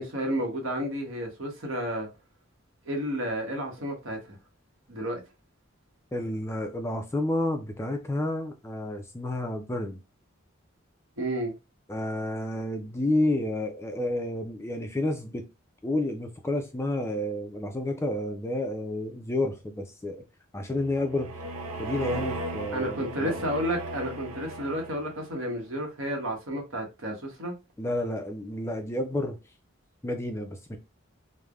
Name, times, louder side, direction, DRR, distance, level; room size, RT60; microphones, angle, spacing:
voice 1, 0.0-2.1 2.9-4.4 4.9-5.2 11.2-11.5 22.7-27.5, equal, 75° right, 1.0 m, -31 dB
voice 2, 6.1-10.0 11.9-15.5 15.8-20.2 20.5-21.4 21.8-23.4 27.8-29.4 30.0-30.8, left 1 dB, 15° left, 0.3 m, -30 dB
sound 1, 20.7-25.3, right 1 dB, 90° right, 0.5 m, -37 dB
3.2 x 2.0 x 2.3 m
head